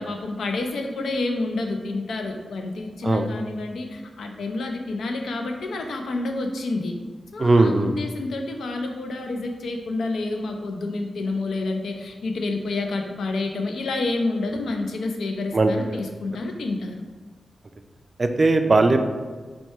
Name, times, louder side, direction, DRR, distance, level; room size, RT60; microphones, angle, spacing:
voice 1, 0.0-7.0 7.3-17.0, left 2 dB, 85° left, 3 dB, 0.5 m, -29 dB
voice 2, 7.4-8.0 15.5-16.0 18.2-19.0, right 2 dB, 35° right, 6 dB, 0.3 m, -19 dB
4.2 x 2.2 x 4.6 m, 1.4 s
wide cardioid pair, 95°, 0 cm